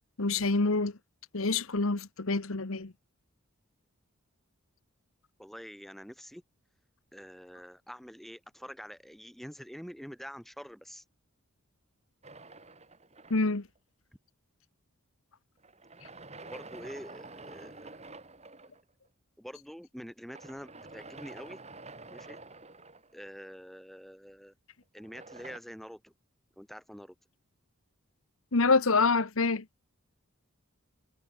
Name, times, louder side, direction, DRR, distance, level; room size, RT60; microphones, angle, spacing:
voice 1, 0.2-0.9 1.3-2.9 13.3-13.6 28.5-29.6, left 3 dB, 70° left, 1.3 m, -26 dB
voice 2, 5.4-6.4 7.1-11.1 16.4-18.0 19.4-21.6 22.1-22.4 23.1-24.5 24.9-26.1 26.6-27.1, equal, ahead, 2.8 m, -46 dB
sound 1, 12.2-13.8 15.6-18.8 20.3-23.5 25.0-25.6, right 3 dB, 30° right, 6.2 m, -48 dB
head